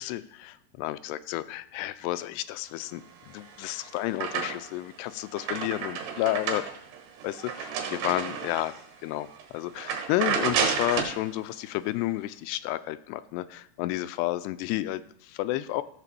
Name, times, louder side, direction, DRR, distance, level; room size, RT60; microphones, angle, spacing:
voice 1, 0.0-3.0 3.3-6.7 7.2-8.8 9.0-15.8, left 16 dB, 85° left, 14 dB, 2.6 m, -31 dB
sound 1, 3.3-4.8 5.2-8.8 9.3-9.4 9.8-11.2, right 6 dB, 90° right, 3.5 m, -31 dB
14.5 x 4.9 x 6.9 m, 0.71 s
omnidirectional pair, 4.8 m